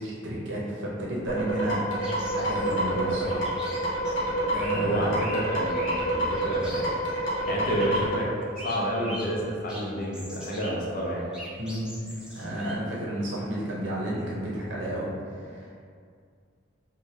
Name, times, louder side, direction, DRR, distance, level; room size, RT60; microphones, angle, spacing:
voice 1, 0.0-3.5 4.5-5.2 11.6-11.9 12.3-15.7, right 1 dB, 70° right, -6 dB, 0.7 m, -32 dB
sound 1, 1.3-8.1, right 1 dB, 90° left, 0.8 m, -28 dB
sound 2, 2.0-8.2 8.5-9.4 9.7-10.8 11.1-12.7, equal, 5° right, 0.5 m, -42 dB
voice 2, 4.8-7.0 7.4-8.3 8.5-11.3, equal, 50° left, -3 dB, 0.5 m, -30 dB
3.1 x 2.3 x 2.8 m, 2.2 s
head